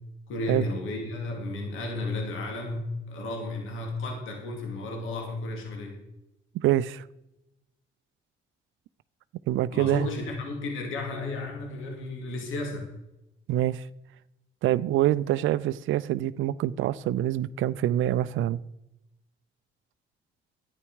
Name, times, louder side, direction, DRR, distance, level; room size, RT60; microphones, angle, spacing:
voice 1, 0.3-6.0 9.7-12.9, left 2 dB, 80° left, 2 dB, 2.7 m, -33 dB
voice 2, 6.5-7.0 9.5-10.1 13.5-13.9 14.6-18.6, right 13 dB, 75° right, 17 dB, 0.5 m, -25 dB
11.0 x 9.6 x 4.7 m, 0.90 s
cardioid pair, 75°, 20 cm